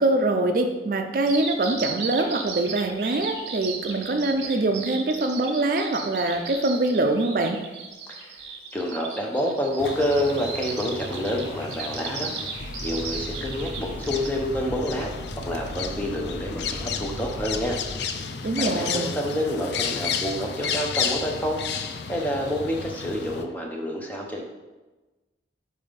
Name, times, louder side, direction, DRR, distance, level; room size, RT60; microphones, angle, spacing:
voice 1, 0.0-7.6 18.4-19.1, right 2 dB, 50° right, 5 dB, 0.4 m, -24 dB
Bird vocalization bird call bird song, 1.3-14.3, right 5 dB, 70° right, 1.1 m, -35 dB
voice 2, 8.7-15.1 15.5-17.8 18.6-21.6 22.1-24.4, equal, 10° left, 0 dB, 0.8 m, -28 dB
sound 1, 9.8-23.5, left 6 dB, 65° left, 0.4 m, -33 dB
sound 2, 12.5-17.9, equal, 35° left, 1.3 m, -39 dB
5.5 x 4.6 x 5.2 m, 1.2 s
head